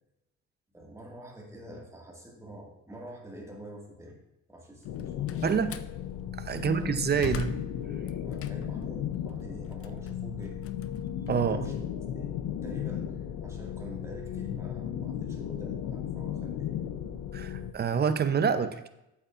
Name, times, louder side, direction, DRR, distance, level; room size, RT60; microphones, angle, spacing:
voice 1, 0.7-4.2 4.5-5.6 6.5-7.3 8.2-10.6 11.3-11.8 12.1-12.3 12.6-16.7, right 1 dB, 10° right, -1 dB, 1.8 m, -47 dB
Slam, 4.8-6.0 6.5-8.9 9.3-11.7, left 8 dB, 50° left, 0.5 m, -42 dB
sound 1, 4.9-17.7, left 9 dB, 90° left, 0.6 m, -35 dB
voice 2, 5.4-5.8 6.4-7.5 11.3-11.6 17.3-18.9, right 6 dB, 35° right, 10 dB, 0.6 m, -27 dB
8.1 x 8.0 x 2.5 m, 0.89 s
cardioid pair, 90°, 30 cm